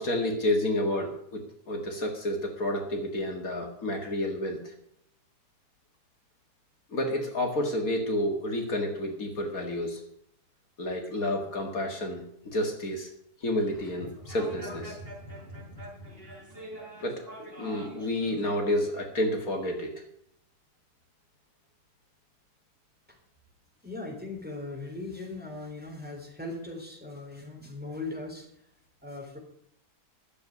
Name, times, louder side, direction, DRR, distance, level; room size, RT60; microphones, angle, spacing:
voice 1, 0.0-1.4 1.7-4.7 6.9-10.0 10.8-13.1 13.4-15.0 17.0-19.9, left 1 dB, 60° left, 2 dB, 2.4 m, -30 dB
sound 1, 13.7-18.6, right 1 dB, 35° right, 4.4 m, -44 dB
voice 2, 23.8-28.5 29.0-29.4, left 2 dB, 5° right, -1 dB, 3.5 m, -39 dB
11.5 x 7.5 x 9.4 m, 0.73 s
omnidirectional pair, 1.7 m